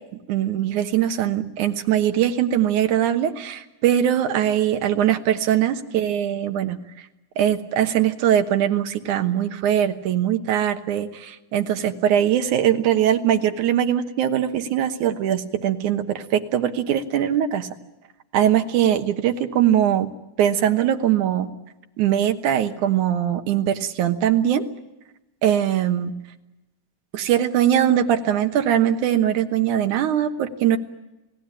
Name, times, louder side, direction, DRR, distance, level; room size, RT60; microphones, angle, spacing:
voice 1, 0.3-6.8 7.4-17.7 18.3-20.1 20.4-21.5 22.0-24.7 25.4-26.1 27.1-30.8, right 10 dB, 65° right, 7 dB, 2.3 m, -21 dB
29.0 x 18.0 x 8.8 m, 1.0 s
omnidirectional pair, 4.4 m